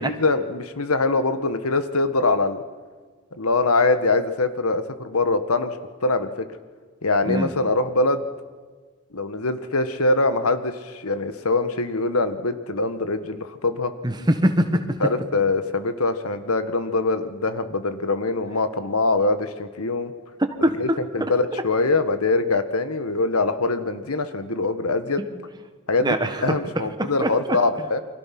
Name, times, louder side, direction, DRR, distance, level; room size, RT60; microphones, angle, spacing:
voice 1, 0.0-2.6 3.4-5.8 6.0-6.3 7.0-8.2 9.1-13.9 15.0-20.1 20.8-20.9 21.1-25.2 25.9-26.1 26.4-28.0, left 3 dB, 90° left, 10 dB, 1.5 m, -23 dB
voice 2, 14.0-15.0 20.4-21.0 21.5-21.6 25.2-25.3 26.0-26.6 27.0-27.6, equal, 20° right, 7 dB, 1.5 m, -23 dB
29.0 x 24.0 x 6.0 m, 1.4 s
head